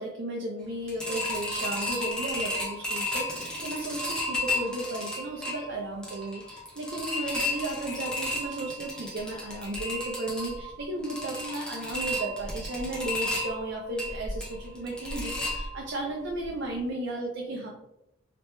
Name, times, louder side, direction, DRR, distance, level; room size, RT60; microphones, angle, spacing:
voice 1, 0.0-17.7, right 2 dB, 60° right, -1 dB, 0.5 m, -34 dB
sound 1, 0.9-16.0 16.4-16.5 16.9-17.0, left 1 dB, 5° left, 0.6 m, -33 dB
3.3 x 3.0 x 3.0 m, 0.85 s
head